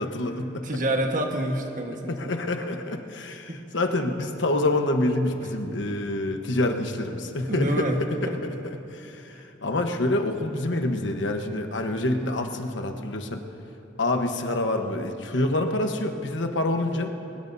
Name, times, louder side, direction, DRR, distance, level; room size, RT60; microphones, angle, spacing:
voice 1, 0.0-0.7 2.1-13.4 14.0-17.1, left 2 dB, 80° left, 5 dB, 1.1 m, -27 dB
voice 2, 0.6-2.3 3.5-3.6 7.5-8.0 8.3-8.4 9.3-9.4, right 1 dB, 45° right, 2 dB, 1.4 m, -27 dB
23.0 x 20.5 x 2.7 m, 2.9 s
head